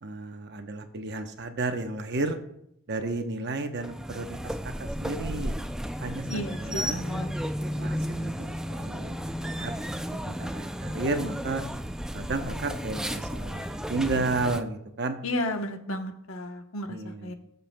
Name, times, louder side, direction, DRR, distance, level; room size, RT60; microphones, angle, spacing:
voice 1, 0.0-2.4 2.9-5.5 6.0-7.0 7.6-9.7 10.2-11.6 12.1-13.6 13.9-15.2 16.9-17.3, right 3 dB, 55° right, 7 dB, 0.8 m, -32 dB
sound 1, 3.8-14.6, equal, 5° right, 0.3 m, -33 dB
voice 2, 6.3-7.3 15.2-17.3, left 1 dB, 80° left, 5 dB, 1.0 m, -33 dB
19.5 x 6.8 x 2.2 m, 0.77 s
head